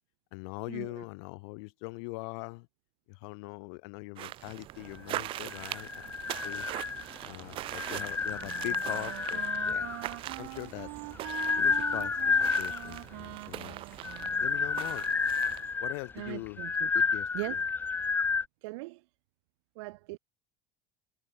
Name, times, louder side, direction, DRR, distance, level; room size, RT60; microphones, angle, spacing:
voice 1, 0.3-2.7 3.1-6.2 6.4-6.7 7.2-10.0 10.4-10.9 11.6-13.8 14.4-15.0 15.8-16.6 16.9-17.6, left 32 dB, 65° left, 6.4 m, -42 dB
sound 1, 4.2-15.7, right 15 dB, 35° right, 1.7 m, -42 dB
sound 2, 5.5-7.2 7.7-10.1 10.9-13.0 13.9-18.4, left 5 dB, 15° left, 1.2 m, -30 dB
Wind instrument woodwind instrument, 7.9-15.0, right 28 dB, 70° right, 7.4 m, -44 dB
voice 2, 16.2-16.9 17.3-17.5 18.6-19.0 19.8-20.2, right 24 dB, 90° right, 1.1 m, -39 dB
cardioid pair, 175°, 15 cm